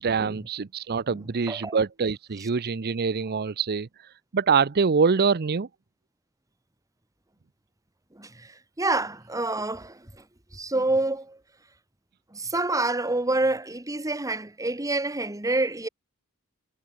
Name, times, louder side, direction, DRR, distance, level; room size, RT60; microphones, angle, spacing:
voice 1, 0.0-5.7, right 5 dB, 45° right, 0.6 m, -25 dB
voice 2, 8.1-10.2 10.5-11.4 12.3-15.9, right 2 dB, 15° right, 1.4 m, -27 dB
head